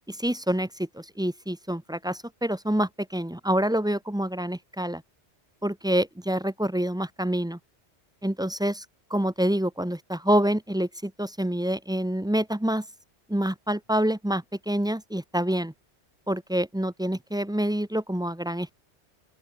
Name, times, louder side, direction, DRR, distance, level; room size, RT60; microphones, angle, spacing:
voice 1, 0.1-5.0 5.6-7.6 8.2-8.8 9.1-12.8 13.3-15.7 16.3-18.7, right 1 dB, 5° right, 0.5 m, -27 dB
open air
omnidirectional pair, 1.1 m